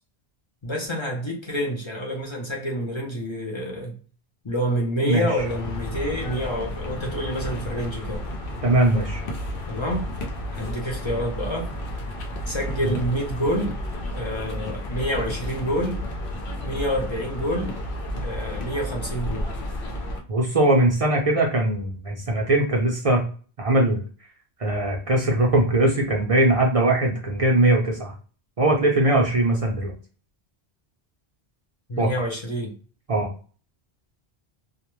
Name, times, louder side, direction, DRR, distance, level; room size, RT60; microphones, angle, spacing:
voice 1, 0.6-4.0 4.4-8.3 9.7-10.1 10.6-11.7 12.5-13.8 14.2-16.0 16.6-17.7 18.2-19.5 31.9-32.7, equal, 35° left, -1 dB, 0.5 m, -28 dB
sound 1, 5.3-20.2, left 1 dB, 60° left, 0.8 m, -32 dB
voice 2, 8.6-9.2 12.8-13.0 20.3-23.2 23.6-24.0 24.6-28.1 28.6-29.9 32.0-32.1 33.1-33.3, right 1 dB, 45° right, -1 dB, 0.5 m, -20 dB
2.3 x 2.1 x 3.0 m, 0.40 s
omnidirectional pair, 1.1 m